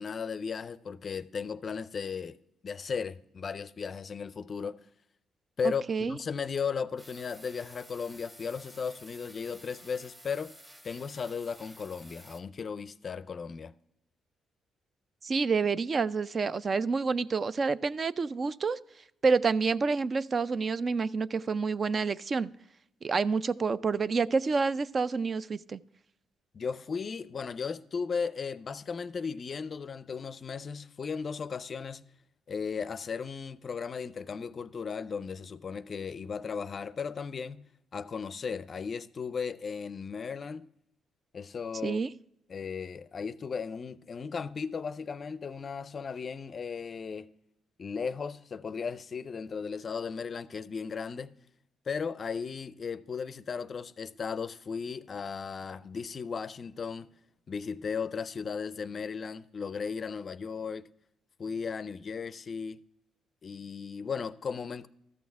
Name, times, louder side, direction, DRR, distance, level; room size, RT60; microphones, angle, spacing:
voice 1, 0.0-2.4 2.6-4.8 5.6-10.5 10.8-13.7 26.5-32.1 32.5-40.7 41.3-42.0 42.5-47.3 47.8-51.3 51.9-57.1 57.5-60.9 61.4-62.8 63.4-64.9, left 5 dB, 45° left, 0.4 m, -36 dB
sound 1, 7.0-12.4, equal, 15° right, 1.3 m, -53 dB
voice 2, 15.2-18.8 19.2-22.5 23.0-25.8 41.8-42.1, right 4 dB, 40° right, 0.3 m, -28 dB
13.5 x 6.3 x 3.4 m
cardioid pair, 90°, 0 cm